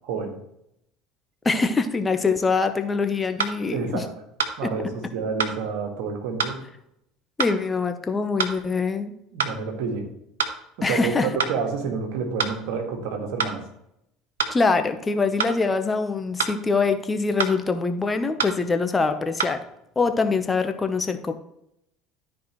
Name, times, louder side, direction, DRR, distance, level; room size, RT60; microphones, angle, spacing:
voice 1, 0.0-0.4 3.7-4.1 4.6-6.6 9.3-10.1 10.8-13.6, right 5 dB, 70° right, 3 dB, 1.8 m, -29 dB
voice 2, 1.4-4.1 4.6-4.7 7.4-9.1 10.8-11.3 14.5-19.6 20.0-21.3, left 4 dB, 20° left, 8 dB, 0.9 m, -24 dB
sound 1, 3.4-3.6 4.4-4.6 5.4-5.6 6.4-6.6 7.4-7.6 8.4-8.6 9.4-9.6 10.4-10.6 11.4-11.6 12.4-12.6 13.4-13.6 14.4-14.6 15.4-15.6 16.4-16.6 17.4-17.6 18.4-18.6 19.4-19.6, right 6 dB, 85° right, 0.7 m, -26 dB
12.5 x 4.7 x 3.1 m, 0.78 s
hypercardioid pair, 70°, 0 cm